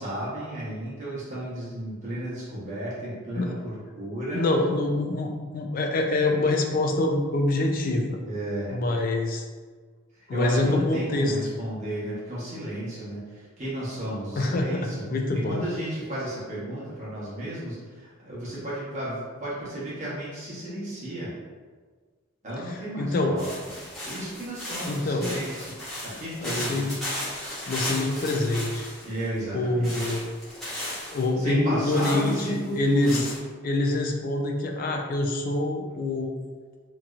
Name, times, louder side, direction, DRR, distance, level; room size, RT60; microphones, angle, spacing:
voice 1, 0.0-4.4 8.3-8.8 10.3-15.1 15.3-21.3 22.4-23.5 24.0-25.7 26.0-26.9 29.0-30.2 31.4-33.2, right 1 dB, 35° right, -9 dB, 1.0 m, -33 dB
voice 2, 4.3-8.2 8.7-9.4 10.3-11.3 14.4-15.6 23.0-23.4 24.9-25.3 26.4-26.9 27.7-28.9 29.5-30.2 31.1-33.3 33.6-36.3, left 2 dB, 40° left, 3 dB, 0.3 m, -25 dB
sound 1, 23.4-29.3 29.8-31.3 31.9-33.4, left 1 dB, ahead, 0.9 m, -35 dB
3.0 x 2.7 x 2.3 m, 1.5 s
head